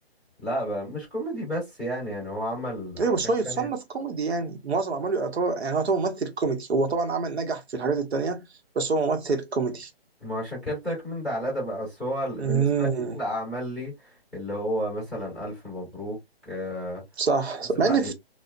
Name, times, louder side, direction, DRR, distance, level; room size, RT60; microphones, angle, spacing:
voice 1, 0.4-3.0 3.4-3.7 10.2-12.9 13.1-16.2 16.4-17.0 17.8-18.1, equal, ahead, 1.0 m, -31 dB
voice 2, 3.0-8.4 8.7-9.9 12.4-13.1 17.2-18.1, right 4 dB, 80° right, 0.8 m, -26 dB
2.5 x 2.1 x 2.4 m
hypercardioid pair, 155°, 32 cm